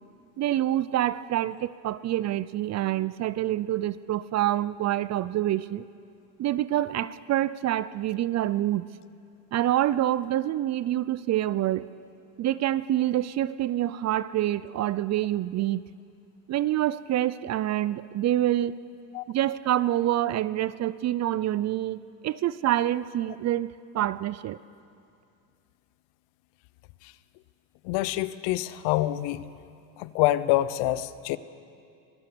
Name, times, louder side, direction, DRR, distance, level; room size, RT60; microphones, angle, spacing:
voice 1, 0.4-5.8 6.4-8.9 9.5-11.9 12.4-15.8 16.5-18.8 19.3-22.0 22.2-24.6, right 13 dB, 40° right, 18 dB, 0.5 m, -26 dB
voice 2, 27.8-29.4 30.0-31.4, left 15 dB, 70° left, 15 dB, 0.9 m, -26 dB
23.5 x 16.0 x 6.9 m, 2.4 s
supercardioid pair, 100°, 44 cm